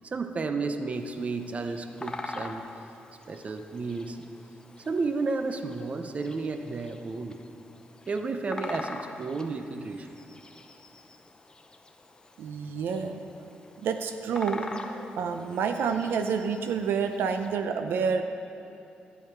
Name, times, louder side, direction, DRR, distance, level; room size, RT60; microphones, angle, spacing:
voice 1, 0.0-2.7 3.3-4.2 4.9-7.4 8.1-10.1, right 3 dB, 40° right, 7 dB, 0.7 m, -32 dB
Bird vocalization bird call bird song, 0.9-17.5, left 2 dB, 20° left, 0.8 m, -44 dB
voice 2, 12.4-13.2 13.8-14.6 15.2-18.2, right 6 dB, 85° right, 7 dB, 0.6 m, -28 dB
12.0 x 9.3 x 4.6 m, 2.7 s
cardioid pair, 105°, 4 cm